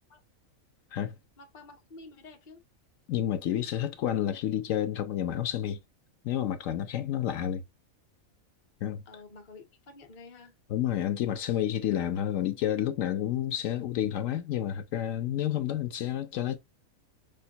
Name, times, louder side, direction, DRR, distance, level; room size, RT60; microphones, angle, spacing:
voice 1, 1.4-2.6 9.1-10.6, left 3 dB, 40° left, 0.7 m, -50 dB
voice 2, 3.1-5.8 6.2-7.6 8.8-9.0 10.7-16.6, left 11 dB, 75° left, 0.9 m, -30 dB
5.1 x 2.1 x 2.7 m
omnidirectional pair, 1.4 m